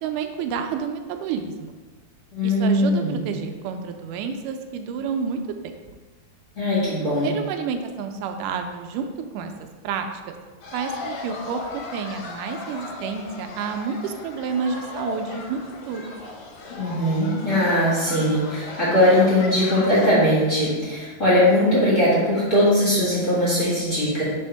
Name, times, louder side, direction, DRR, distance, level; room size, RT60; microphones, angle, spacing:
voice 1, 0.0-1.7 2.4-5.8 7.2-9.1 9.3-9.5 9.8-10.3 10.7-11.6 11.9-15.6 15.9-16.1, right 6 dB, 90° right, 6 dB, 2.1 m, -29 dB
voice 2, 2.3-3.2 6.5-7.3 16.7-24.2, left 1 dB, 30° left, -10 dB, 1.7 m, -20 dB
sound 1, 10.6-20.1, left 3 dB, 65° left, 1.9 m, -36 dB
5.3 x 4.2 x 4.5 m, 1.3 s
omnidirectional pair, 3.6 m